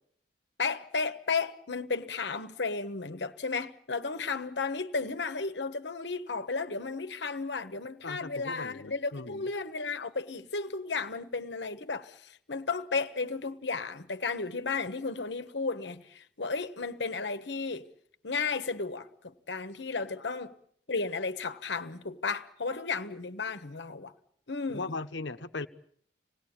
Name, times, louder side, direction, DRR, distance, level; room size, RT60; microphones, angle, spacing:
voice 1, 0.6-17.9 18.2-20.6 20.9-24.1 24.5-25.0, left 4 dB, 70° left, 1.2 m, -34 dB
voice 2, 8.0-9.5 24.7-25.7, left 3 dB, 85° left, 1.1 m, -38 dB
26.0 x 18.5 x 8.8 m
head